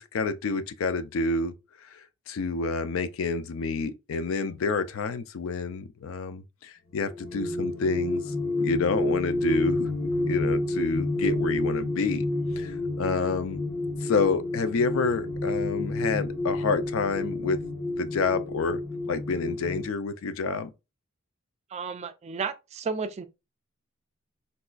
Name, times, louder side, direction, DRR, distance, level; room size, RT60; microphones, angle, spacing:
voice 1, 0.0-1.5 1.9-2.0 2.3-9.9 10.3-12.3 12.6-13.6 14.0-17.6 18.0-18.8 19.1-20.7, left 4 dB, 70° left, 0.4 m, -28 dB
sound 1, 7.1-19.8, left 2 dB, 90° left, 1.3 m, -29 dB
voice 2, 21.7-23.3, right 5 dB, 30° right, 0.3 m, -33 dB
4.0 x 2.3 x 2.4 m
head